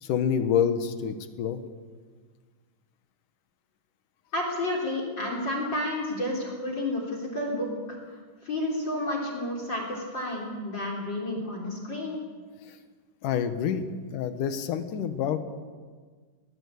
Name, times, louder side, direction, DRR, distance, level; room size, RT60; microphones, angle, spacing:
voice 1, 0.0-1.6 13.2-13.8 14.1-15.4, left 8 dB, 65° left, 9 dB, 2.6 m, -27 dB
voice 2, 4.3-8.0 8.4-12.2, left 1 dB, 30° left, 1 dB, 4.0 m, -31 dB
22.5 x 18.5 x 8.5 m, 1.5 s
omnidirectional pair, 4.5 m